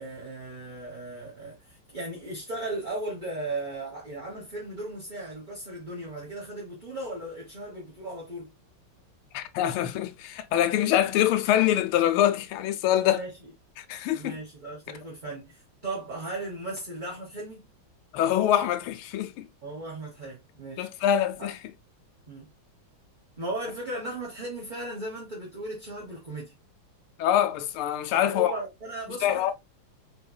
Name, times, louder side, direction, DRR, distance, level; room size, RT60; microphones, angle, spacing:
voice 1, 0.0-8.5 13.1-13.5 14.1-17.7 19.6-20.9 21.4-21.5 22.3-22.5 23.4-26.5 28.1-29.5, right 2 dB, 30° right, 1.0 m, -37 dB
voice 2, 9.3-13.2 13.8-14.4 18.1-19.5 20.8-21.5 27.2-28.5 29.2-29.5, left 11 dB, 85° left, 1.5 m, -24 dB
4.5 x 3.8 x 2.2 m
omnidirectional pair, 2.3 m